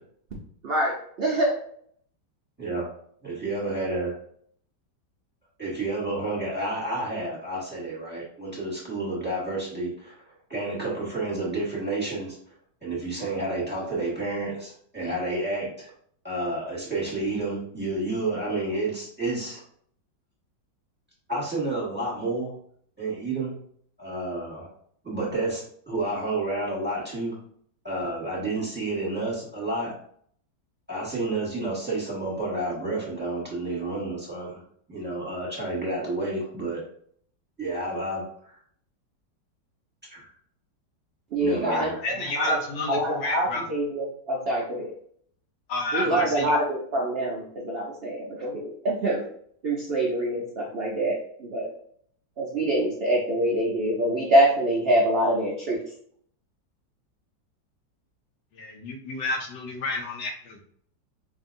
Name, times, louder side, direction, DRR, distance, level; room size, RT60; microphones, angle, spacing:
voice 1, 0.6-1.6 41.3-41.9 42.4-42.6 42.9-44.9 45.9-49.2 49.6-51.7 52.4-55.8, right 1 dB, 80° right, -3 dB, 0.5 m, -25 dB
voice 2, 3.2-4.1 5.6-10.2 10.5-12.4 12.8-15.9 16.2-19.6 21.3-22.5 23.0-23.6 24.0-24.7 25.0-27.4 27.8-29.9 30.9-34.6 34.9-36.8 37.6-38.5 40.1-40.3 41.4-42.0, right 2 dB, 5° right, -6 dB, 1.3 m, -30 dB
voice 3, 41.7-43.6 45.7-46.6 58.5-60.6, left 2 dB, 85° left, 3 dB, 1.4 m, -31 dB
5.0 x 2.7 x 2.6 m, 0.63 s
omnidirectional pair, 1.9 m